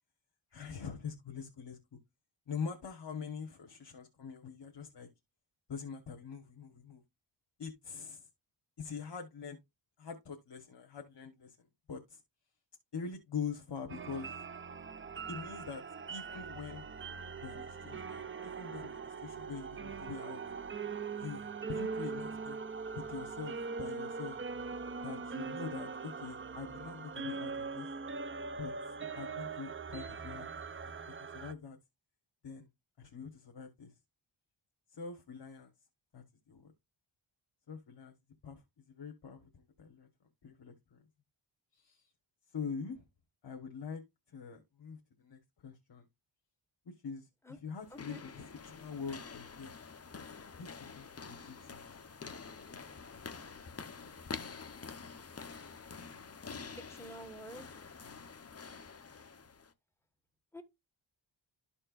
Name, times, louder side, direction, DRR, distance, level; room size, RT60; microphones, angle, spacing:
voice 1, 0.5-1.8 2.5-5.1 5.7-7.0 7.6-8.3 8.8-9.6 10.0-11.6 11.9-12.2 12.9-14.4 15.3-15.8 16.1-16.9 17.4-20.4 21.2-22.6 22.9-24.4 25.0-27.9 28.6-28.7 29.1-31.8 32.4-32.7 33.0-33.9 34.9-35.7 36.1-36.7 37.7-38.1 38.4-40.1 40.4-41.0 41.7-42.1 42.5-43.1 43.4-44.0 44.3-46.0 46.8-49.7 50.6-51.9, left 6 dB, 55° left, 1.2 m, -44 dB
sound 1, 13.9-31.5, right 5 dB, 25° right, 0.4 m, -41 dB
sound 2, 47.8-59.7, left 5 dB, 30° left, 0.7 m, -47 dB
voice 2, 47.9-48.2 56.8-57.7 60.5-60.6, equal, 5° left, 1.4 m, -48 dB
12.5 x 4.4 x 2.4 m
wide cardioid pair, 125°, 49 cm